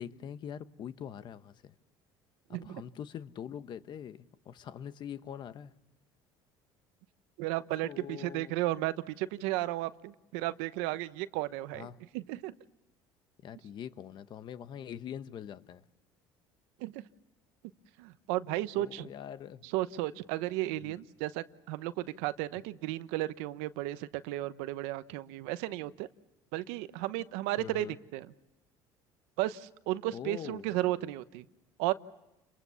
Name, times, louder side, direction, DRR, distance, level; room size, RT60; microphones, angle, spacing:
voice 1, 0.0-1.7 2.5-5.7 7.8-8.5 11.7-12.0 13.4-15.8 18.8-19.7 20.8-21.0 27.6-28.0 30.1-30.7, left 9 dB, 50° left, 1.1 m, -43 dB
voice 2, 2.5-2.8 7.4-11.9 12.1-12.5 16.8-17.0 18.0-19.1 19.6-26.1 26.5-27.9 28.1-28.3 29.4-31.4 31.8-31.9, right 16 dB, 90° right, 1.0 m, -34 dB
29.5 x 23.5 x 7.0 m
cardioid pair, 110°, 10 cm